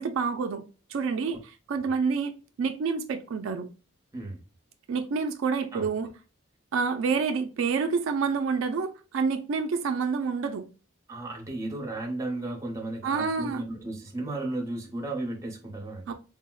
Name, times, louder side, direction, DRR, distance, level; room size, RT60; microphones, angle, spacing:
voice 1, 0.0-2.3 2.6-3.7 4.9-6.1 6.7-10.7 13.0-13.6 16.1-16.2, right 5 dB, 80° right, 0.4 m, -28 dB
voice 2, 11.1-16.1, right 2 dB, 15° right, 0.7 m, -34 dB
3.9 x 2.0 x 2.2 m
head